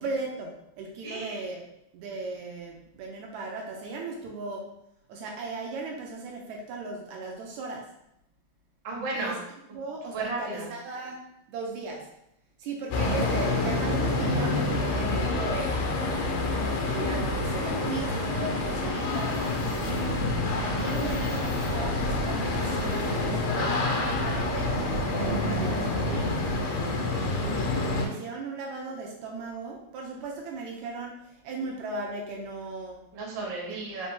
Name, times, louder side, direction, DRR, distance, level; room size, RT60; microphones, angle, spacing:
voice 1, 0.0-1.7 1.9-4.7 5.1-7.9 9.2-9.3 9.7-12.1 12.6-15.9 16.5-20.3 20.7-24.8 25.2-26.4 27.2-33.1 33.7-33.9, right 3 dB, 80° right, 0 dB, 2.0 m, -37 dB
voice 2, 1.0-1.4 8.8-9.4 10.1-10.7 27.1-27.3 33.1-34.1, right 3 dB, 50° right, -4 dB, 1.5 m, -34 dB
sound 1, 12.9-28.1, left 2 dB, 90° left, 2.2 m, -27 dB
5.1 x 2.7 x 3.6 m, 0.82 s
omnidirectional pair, 3.3 m